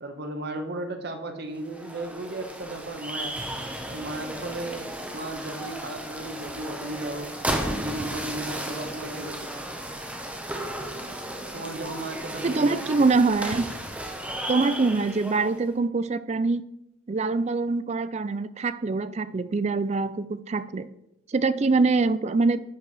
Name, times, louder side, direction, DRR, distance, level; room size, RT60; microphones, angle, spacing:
voice 1, 0.0-3.3 3.9-7.3 7.8-9.5 11.5-13.3, right 2 dB, 50° right, 6 dB, 1.1 m, -35 dB
sound 1, 1.6-15.6, right 1 dB, 5° right, 0.8 m, -34 dB
voice 2, 12.4-13.7 14.5-16.6 17.1-20.9 21.3-22.6, right 3 dB, 30° right, 14 dB, 0.4 m, -24 dB
11.0 x 4.7 x 4.8 m, 0.84 s
head